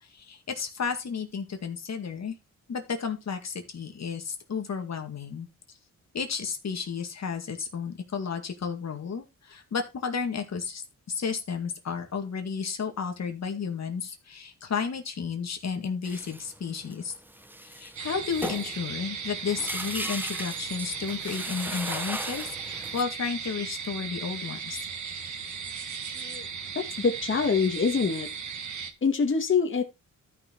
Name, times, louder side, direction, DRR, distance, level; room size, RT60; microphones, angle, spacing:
voice 1, 0.0-2.3 2.7-5.5 6.1-17.1 17.6-24.9, left 6 dB, 55° left, 5 dB, 2.1 m, -32 dB
sound 1, 16.0-23.0, right 1 dB, 5° right, 1.0 m, -37 dB
sound 2, 18.0-28.9, right 6 dB, 60° right, 2.0 m, -37 dB
voice 2, 26.1-26.5 27.0-28.3 29.0-29.8, left 5 dB, 40° left, 3 dB, 2.0 m, -25 dB
12.5 x 5.7 x 4.6 m, 0.25 s
cardioid pair, 100°, 32 cm